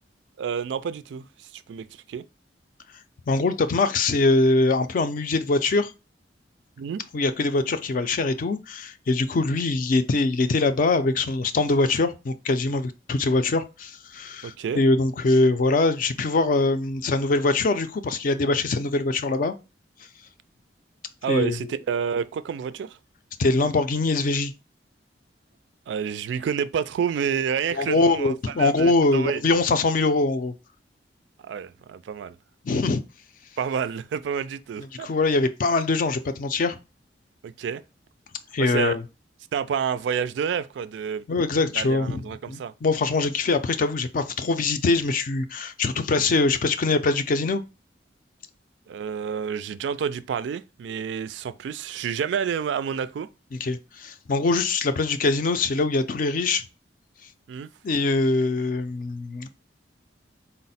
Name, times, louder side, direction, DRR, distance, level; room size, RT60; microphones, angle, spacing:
voice 1, 0.4-2.2 6.8-7.0 14.4-14.8 21.2-23.0 25.9-29.4 31.4-32.4 33.6-35.1 37.4-37.8 38.6-39.0 39.5-41.2 41.7-42.7 48.9-53.3 57.5-57.7, right 7 dB, 70° right, 0.3 m, -29 dB
voice 2, 3.3-5.9 7.1-19.5 21.3-21.6 23.4-24.5 27.7-30.5 32.6-33.0 34.8-36.8 38.5-39.0 41.3-47.6 53.5-56.6 57.8-59.5, left 3 dB, 50° left, 0.4 m, -23 dB
4.0 x 2.0 x 4.1 m
head